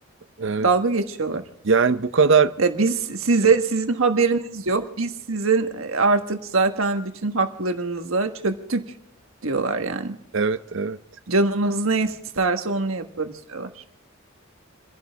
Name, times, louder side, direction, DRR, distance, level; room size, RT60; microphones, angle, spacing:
voice 1, 0.6-1.4 2.6-8.8 9.4-10.2 11.3-13.8, right 3 dB, 85° right, 6 dB, 1.5 m, -23 dB
voice 2, 1.6-2.5 10.3-11.0, right 5 dB, 65° right, 13 dB, 0.6 m, -20 dB
29.0 x 11.0 x 3.6 m, 0.76 s
head